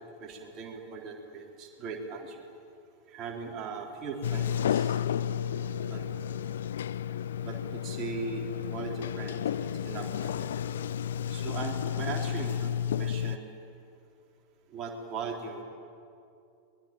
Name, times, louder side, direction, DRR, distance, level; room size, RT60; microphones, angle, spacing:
voice 1, 0.2-2.5 3.1-5.0 5.9-6.0 7.4-10.5 11.3-13.5 14.7-15.6, right 5 dB, 35° right, 1 dB, 3.8 m, -39 dB
sound 1, 4.0-12.2, equal, 35° left, 4.8 m, -48 dB
Sliding door, 4.2-13.4, left 9 dB, 60° left, 0.5 m, -32 dB
24.0 x 21.5 x 9.0 m, 2.5 s
figure-of-eight pair, 90°, 0 cm